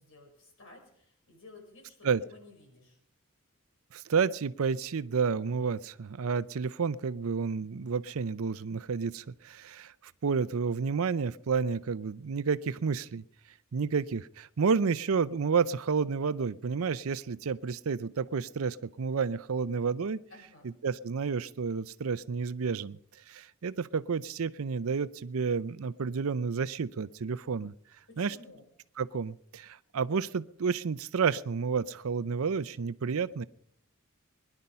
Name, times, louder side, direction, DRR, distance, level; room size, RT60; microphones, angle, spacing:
voice 1, 0.0-3.0 20.3-20.7 28.1-28.6, left 2 dB, 65° left, 2 dB, 5.8 m, -54 dB
voice 2, 3.9-13.2 13.7-20.2 20.6-23.0 23.3-27.7 28.2-28.4 29.0-33.4, right 5 dB, 75° right, 16 dB, 0.5 m, -30 dB
21.5 x 11.0 x 5.6 m, 0.66 s
head